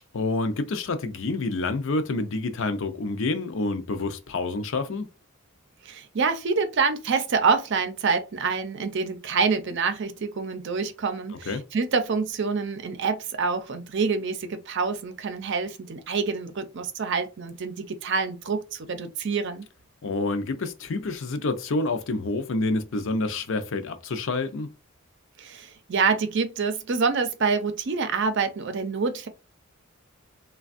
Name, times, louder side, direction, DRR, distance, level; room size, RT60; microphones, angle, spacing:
voice 1, 0.1-5.1 11.5-11.6 20.0-24.7, left 3 dB, 65° left, 0.5 m, -28 dB
voice 2, 5.8-19.6 25.4-29.3, right 5 dB, 55° right, 0.5 m, -26 dB
3.3 x 2.2 x 2.5 m
head